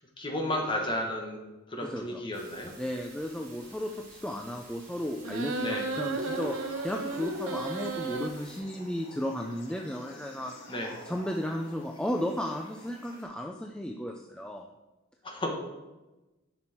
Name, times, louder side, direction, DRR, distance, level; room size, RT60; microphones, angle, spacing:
voice 1, 0.2-1.4 1.7-2.7 5.6-5.8 10.7-10.9 15.2-15.5, left 1 dB, 25° left, 1 dB, 1.6 m, -32 dB
voice 2, 1.8-2.2 2.8-10.7 11.0-14.7, equal, 5° left, 2 dB, 0.5 m, -34 dB
sound 1, 2.3-8.6, right 2 dB, 45° right, 3.5 m, -52 dB
sound 2, 5.2-8.3, right 3 dB, 90° right, 0.9 m, -33 dB
sound 3, 6.2-13.2, left 1 dB, 70° left, 3.2 m, -50 dB
11.0 x 6.1 x 4.5 m, 1.1 s
head